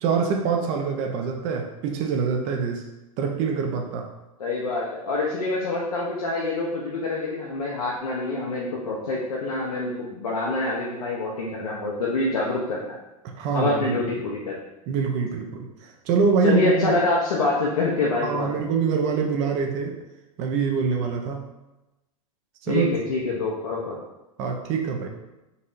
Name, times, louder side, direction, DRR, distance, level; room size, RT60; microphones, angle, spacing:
voice 1, 0.0-2.8 3.2-4.1 13.2-14.0 14.9-17.0 18.2-19.9 20.4-21.4 22.6-22.9 24.4-25.1, right 5 dB, 40° right, 2 dB, 0.5 m, -25 dB
voice 2, 4.4-12.9 13.5-14.6 16.4-18.5 22.7-24.0, left 3 dB, 80° left, -4 dB, 0.6 m, -26 dB
4.0 x 2.7 x 2.5 m, 1.0 s
figure-of-eight pair, 95°, 19 cm